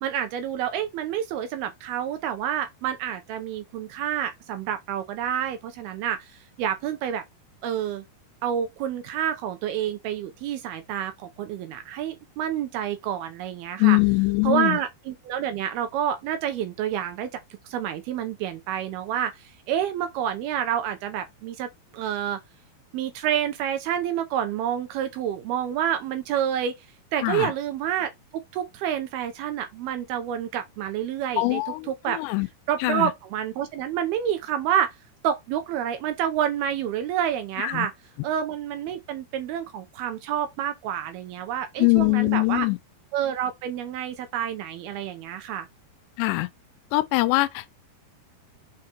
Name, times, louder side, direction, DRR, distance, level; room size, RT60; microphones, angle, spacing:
voice 1, 0.0-6.3 6.6-7.2 7.6-8.0 8.4-14.0 14.4-17.3 17.7-22.4 22.9-26.8 27.1-31.6 31.9-32.2 32.7-34.9 35.2-37.9 38.2-42.7 43.1-45.7, right 10 dB, 75° right, 2.5 m, -28 dB
voice 2, 13.8-14.8 27.2-27.5 31.4-32.5 32.8-33.1 37.6-37.9 41.8-42.8 46.2-46.5 46.9-47.7, left 23 dB, 85° left, 2.8 m, -22 dB
6.3 x 4.7 x 4.4 m
omnidirectional pair, 5.0 m